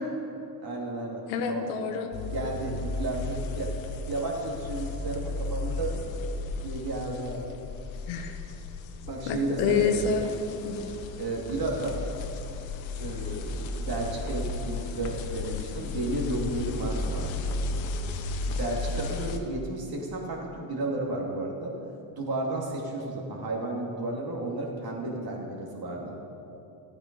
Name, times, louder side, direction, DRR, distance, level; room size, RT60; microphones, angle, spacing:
voice 1, 0.6-1.7 2.3-3.7 4.1-6.0 6.6-7.6 9.0-9.9 11.2-12.0 13.0-17.3 18.5-21.7 22.2-26.1, right 2 dB, 45° right, -1 dB, 2.7 m, -33 dB
voice 2, 1.3-2.1 8.1-8.4 9.3-10.2 10.6-10.8, left 6 dB, 85° left, 6 dB, 1.2 m, -27 dB
sound 1, 2.1-19.4, left 3 dB, 65° left, 1.2 m, -34 dB
13.0 x 8.8 x 5.4 m, 2.9 s
supercardioid pair, 85°, 50 cm